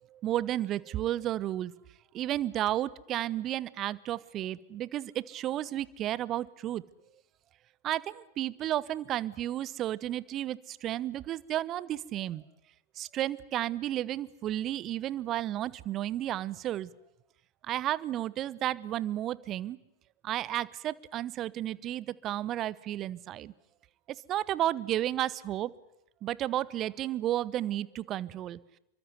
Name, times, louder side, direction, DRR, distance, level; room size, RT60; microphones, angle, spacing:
voice 1, 0.1-1.7 2.1-6.8 7.8-12.4 13.0-16.9 17.6-19.8 20.2-23.5 24.3-25.7 26.2-28.6, right 13 dB, 30° right, 21 dB, 0.9 m, -32 dB
28.5 x 24.0 x 7.9 m, 0.83 s
figure-of-eight pair, 90°, 0 cm